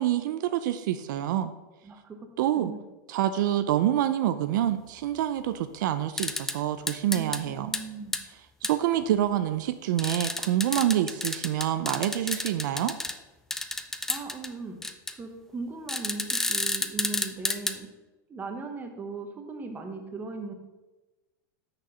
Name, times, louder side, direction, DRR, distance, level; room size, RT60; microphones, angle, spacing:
voice 1, 0.0-1.5 2.4-2.7 3.1-7.7 8.6-12.9, right 12 dB, 70° right, 11 dB, 0.5 m, -27 dB
voice 2, 1.8-2.2 2.5-2.8 7.1-8.2 14.1-14.8 15.2-17.9 18.3-20.5, right 3 dB, 15° right, 5 dB, 1.1 m, -38 dB
sound 1, 6.2-6.6 6.9-7.4 7.7-7.8 8.1-8.2 8.6-8.7 10.0-13.1 13.5-14.5 14.8-15.1 15.9-17.7, left 2 dB, 5° left, 0.4 m, -30 dB
6.6 x 6.1 x 5.6 m, 1.1 s
supercardioid pair, 140°, 10 cm